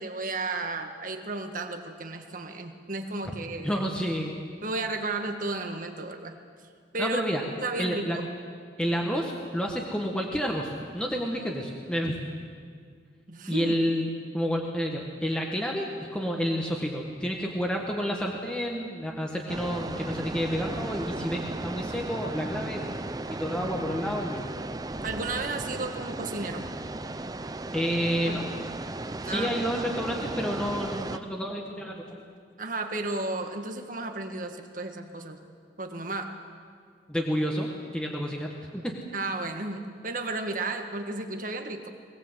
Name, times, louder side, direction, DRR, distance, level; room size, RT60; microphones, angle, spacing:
voice 1, 0.0-3.8 4.6-6.4 6.9-7.2 7.6-8.3 13.3-13.7 25.0-26.6 28.3-28.4 29.2-29.6 32.6-35.4 35.8-36.3 39.1-41.9, right 2 dB, 50° right, 5 dB, 1.8 m, -33 dB
voice 2, 3.6-4.3 7.0-7.4 7.8-8.2 8.8-12.2 13.5-22.8 23.3-24.4 27.7-28.4 29.2-32.2 37.1-38.9, equal, 5° left, 0 dB, 1.6 m, -30 dB
sound 1, 19.5-31.2, right 2 dB, 20° right, 0.6 m, -35 dB
21.5 x 18.5 x 8.2 m, 2.1 s
head